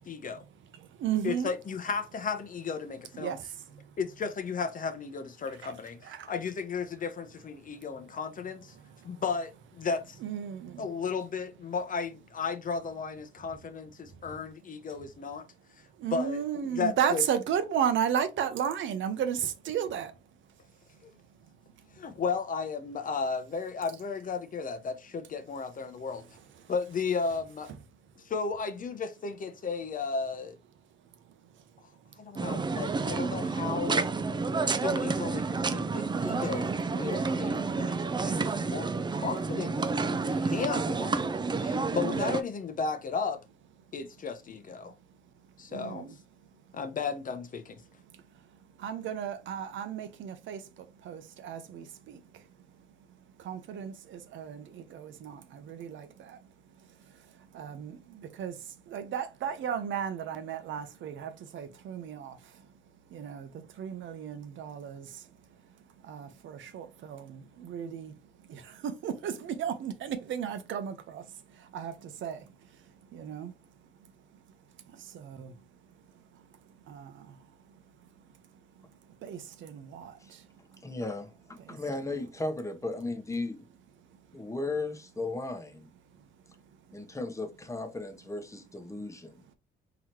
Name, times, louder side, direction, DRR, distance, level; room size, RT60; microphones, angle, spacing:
voice 1, 0.1-0.4 1.2-3.4 4.0-8.7 9.0-10.2 10.8-15.5 16.1-16.4 16.7-17.2 21.0-21.1 22.0-26.2 26.7-27.7 28.2-30.6 32.2-34.1 34.7-39.9 40.3-41.2 41.5-43.4 43.9-44.9 45.6-46.1 46.7-47.7, left 5 dB, 45° left, 0.7 m, -34 dB
voice 2, 0.7-1.5 3.1-3.9 5.6-5.7 6.0-6.3 7.7-8.0 8.7-9.2 10.2-10.9 14.1-14.2 16.0-20.1 21.8-22.2 26.6-26.7 31.2-31.6 32.0-32.1 37.7-38.0 42.0-42.3 45.7-46.1 48.1-52.8 53.1-62.7 63.1-65.7 66.0-73.5 74.3-74.4 74.9-75.6 76.1-78.2 78.8-78.9 79.2-80.8 81.6-81.8 84.1-84.2 86.9-87.0, right 8 dB, 75° right, 0.8 m, -36 dB
sound 1, 32.4-42.4, right 4 dB, 20° right, 0.4 m, -30 dB
voice 3, 80.8-83.7 84.3-85.9 86.9-89.4, left 2 dB, 15° left, 0.9 m, -36 dB
3.9 x 3.0 x 2.9 m
cardioid pair, 90°, 20 cm